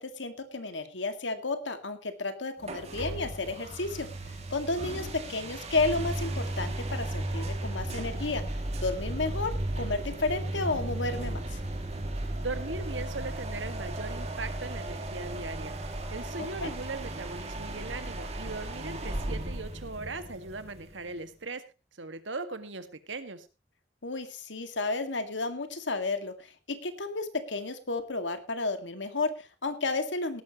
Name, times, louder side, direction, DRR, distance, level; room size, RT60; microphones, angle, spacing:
voice 1, 0.0-4.1 4.5-8.4 8.8-11.4 16.6-16.7 24.0-26.3 26.7-30.4, left 3 dB, 80° left, 9 dB, 2.0 m, -32 dB
sound 1, 2.6-21.1, right 1 dB, 35° right, 2.3 m, -35 dB
voice 2, 12.4-21.6 22.0-23.5, right 3 dB, 90° right, 10 dB, 1.8 m, -39 dB
17.5 x 12.5 x 3.0 m, 0.29 s
head